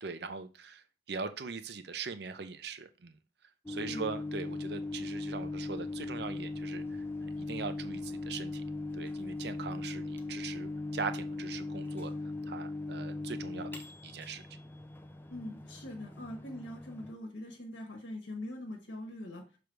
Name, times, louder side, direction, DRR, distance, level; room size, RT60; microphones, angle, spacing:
voice 1, 0.0-3.2 3.7-8.6 8.9-12.1 12.5-14.4, right 5 dB, 55° right, 10 dB, 0.6 m, -41 dB
Microwave oven, 3.7-17.1, left 2 dB, 10° left, 0.4 m, -39 dB
voice 2, 15.3-19.6, left 1 dB, 70° left, 1 dB, 1.2 m, -43 dB
6.6 x 3.4 x 4.6 m, 0.34 s
head